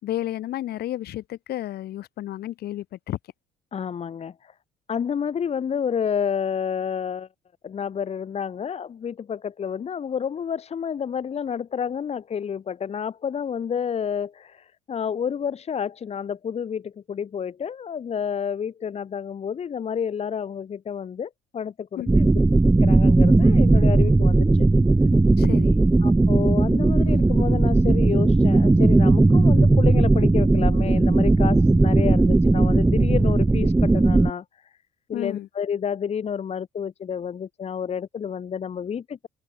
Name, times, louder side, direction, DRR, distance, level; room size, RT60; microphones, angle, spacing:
voice 1, 0.0-3.2 22.0-22.2 25.4-25.8 35.1-35.5, left 13 dB, 70° left, 5.6 m, -32 dB
voice 2, 3.7-4.5 4.9-7.3 7.6-22.3 22.8-24.7 26.0-34.8 35.1-39.3, left 7 dB, 40° left, 1.5 m, -30 dB
sound 1, 22.1-34.3, right 2 dB, 10° right, 1.2 m, -17 dB
open air
cardioid pair, 110°, 17 cm